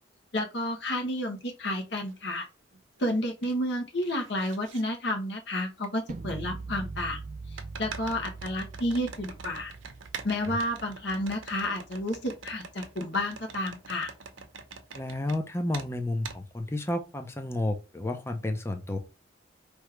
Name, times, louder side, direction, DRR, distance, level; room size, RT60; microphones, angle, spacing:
voice 1, 0.3-2.4 3.0-7.2 7.8-9.7 10.2-14.1, left 1 dB, 65° left, 1.0 m, -31 dB
sound 1, 2.1-2.2 2.7-3.5 3.8-4.8 5.8-5.9 7.6-15.4 15.7-15.9 16.2-16.4, right 5 dB, 85° right, 0.8 m, -44 dB
sound 2, 6.1-12.1, right 3 dB, 40° right, 0.4 m, -42 dB
voice 2, 14.9-19.0, left 1 dB, 15° left, 0.6 m, -31 dB
4.8 x 3.2 x 3.2 m
head